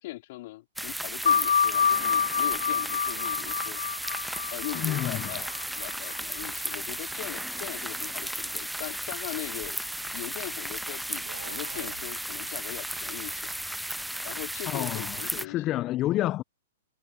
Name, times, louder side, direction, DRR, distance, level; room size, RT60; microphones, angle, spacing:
voice 1, 0.0-3.8 4.5-9.8 10.1-13.5 14.2-15.7, left 18 dB, 55° left, 4.8 m, -40 dB
sound 1, 0.8-15.5, right 1 dB, ahead, 0.4 m, -35 dB
sound 2, 1.3-6.4, left 7 dB, 85° left, 0.6 m, -27 dB
voice 2, 4.7-5.3 14.7-16.4, left 14 dB, 30° left, 0.7 m, -29 dB
sound 3, 9.0-10.3 11.1-12.1, right 8 dB, 80° right, 2.3 m, -48 dB
hypercardioid pair, 125°, 0 cm